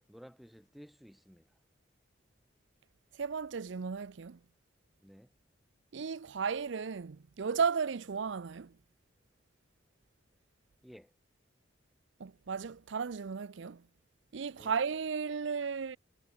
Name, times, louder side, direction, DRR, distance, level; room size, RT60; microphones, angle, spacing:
voice 1, 0.0-1.5 5.0-5.3 10.8-11.1 14.6-14.7, equal, ahead, 0.5 m, -54 dB
voice 2, 3.2-4.4 5.9-8.7 12.2-13.8 14.3-16.0, right 6 dB, 70° right, 0.5 m, -34 dB
head